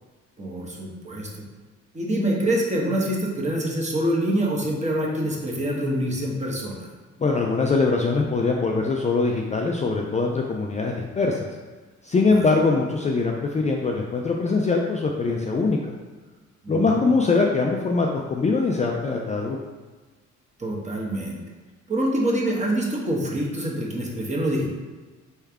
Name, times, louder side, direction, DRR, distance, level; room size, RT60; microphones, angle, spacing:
voice 1, 0.4-1.4 1.9-6.9 12.2-12.4 16.6-17.0 20.6-21.4 21.9-24.7, right 1 dB, 25° right, -3 dB, 1.2 m, -25 dB
voice 2, 7.2-11.6 12.0-15.9 16.7-19.6, left 3 dB, 25° left, 0 dB, 0.4 m, -22 dB
4.4 x 3.4 x 3.5 m, 1.3 s
cardioid pair, 90°, 30 cm